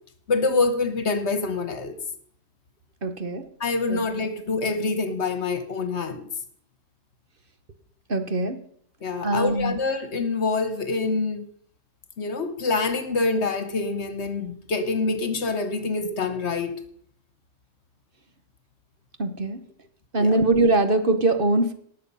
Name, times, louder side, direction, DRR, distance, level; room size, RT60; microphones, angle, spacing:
voice 1, 0.3-2.0 3.6-6.3 9.0-11.5 12.2-16.7 20.2-20.4, left 3 dB, 60° left, 11 dB, 1.4 m, -26 dB
voice 2, 3.0-3.5 3.9-4.0 8.1-8.6 9.2-9.8 19.2-19.6 20.1-21.7, right 2 dB, 45° right, 9 dB, 1.1 m, -22 dB
18.5 x 6.8 x 5.5 m, 0.64 s
omnidirectional pair, 1.3 m